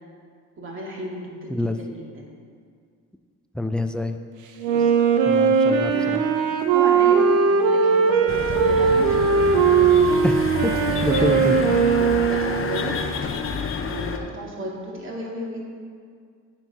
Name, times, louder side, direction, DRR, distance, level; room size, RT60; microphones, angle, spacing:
voice 1, 0.6-2.3 4.7-5.0 5.7-6.2 6.7-9.3 10.7-12.9 13.9-15.6, right 1 dB, 45° right, -3 dB, 2.0 m, -35 dB
voice 2, 3.5-4.2 5.3-6.2 10.2-10.7 11.0-11.6, left 1 dB, 5° left, 7 dB, 0.4 m, -26 dB
Wind instrument woodwind instrument, 4.6-13.2, right 5 dB, 80° right, 0.8 m, -19 dB
sound 1, 8.3-14.2, left 5 dB, 45° left, 0.8 m, -29 dB
9.1 x 4.6 x 5.3 m, 2.1 s
cardioid pair, 90°, 30 cm